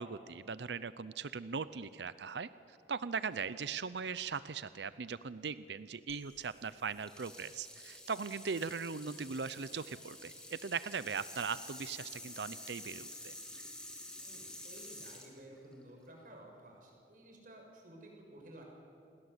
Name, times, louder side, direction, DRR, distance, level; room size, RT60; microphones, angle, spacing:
voice 1, 0.0-2.5 2.9-13.3, right 5 dB, 80° right, 15 dB, 0.6 m, -39 dB
sound 1, 6.1-16.3, left 1 dB, 5° left, 3.6 m, -50 dB
voice 2, 14.2-18.6, right 1 dB, 50° right, 1 dB, 6.5 m, -54 dB
29.0 x 21.5 x 8.1 m, 2.7 s
head